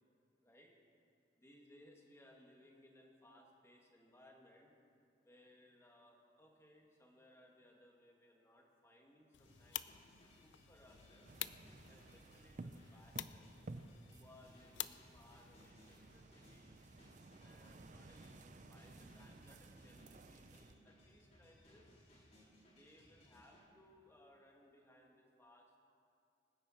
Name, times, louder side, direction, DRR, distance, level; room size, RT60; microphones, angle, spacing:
voice 1, 0.4-0.7 1.4-4.7 5.2-9.8 10.4-11.3 11.9-13.5 14.1-16.9 17.4-21.9 22.6-25.8, left 1 dB, 15° left, -1 dB, 2.1 m, -65 dB
sound 1, 9.3-15.7, left 13 dB, 85° left, 0.5 m, -50 dB
sound 2, 9.4-23.6, equal, 40° left, 3.9 m, -65 dB
sound 3, 11.3-20.7, right 2 dB, 45° right, 0.5 m, -56 dB
25.5 x 10.5 x 4.5 m, 2.5 s
head